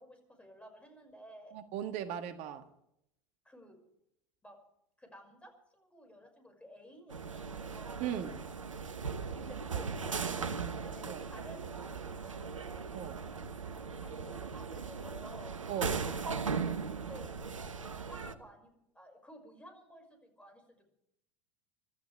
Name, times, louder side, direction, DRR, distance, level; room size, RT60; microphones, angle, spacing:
voice 1, 0.0-1.6 3.4-3.8 4.4-4.6 5.0-8.1 9.3-12.6 14.0-15.6 17.1-17.3 17.8-20.9, equal, 5° left, 3 dB, 5.8 m, -53 dB
voice 2, 1.5-2.6 8.0-8.4 11.1-11.2 12.9-13.2 15.7-16.0, right 9 dB, 45° right, 8 dB, 1.6 m, -38 dB
sound 1, 7.1-18.3, right 5 dB, 80° right, 1.0 m, -38 dB
25.5 x 13.0 x 3.4 m, 0.77 s
figure-of-eight pair, 80°, 16 cm